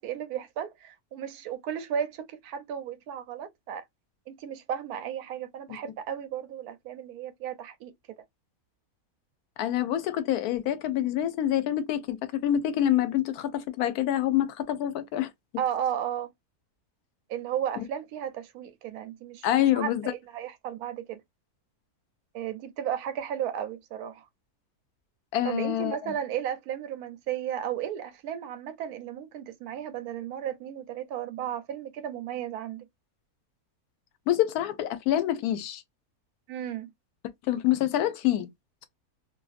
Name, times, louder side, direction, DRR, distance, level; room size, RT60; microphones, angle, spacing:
voice 1, 0.0-3.8 4.3-7.9 15.6-16.3 17.3-19.5 19.7-21.2 22.3-24.3 25.4-32.9 36.5-36.9, right 9 dB, 80° right, 1.0 m, -34 dB
voice 2, 9.6-15.3 19.4-20.1 25.3-26.1 34.3-35.8 37.5-38.5, left 12 dB, 90° left, 1.1 m, -26 dB
2.6 x 2.6 x 2.4 m
omnidirectional pair, 1.6 m